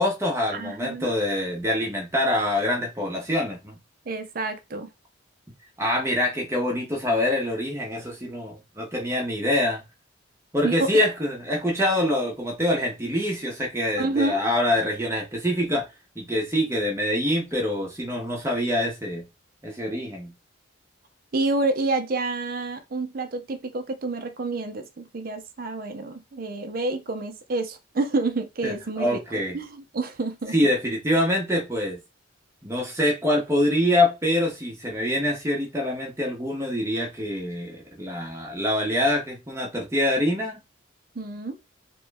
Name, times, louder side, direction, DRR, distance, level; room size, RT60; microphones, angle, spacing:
voice 1, 0.0-3.7 5.8-9.8 10.5-15.9 16.2-19.3 19.6-20.3 28.6-29.6 30.5-32.0 32.6-40.6, left 1 dB, 15° right, 0.8 m, -25 dB
voice 2, 0.5-1.1 4.1-4.9 10.6-11.0 14.0-14.4 21.3-29.2 29.5-30.6 41.2-41.6, right 2 dB, 45° right, 0.5 m, -28 dB
3.0 x 2.2 x 3.3 m
head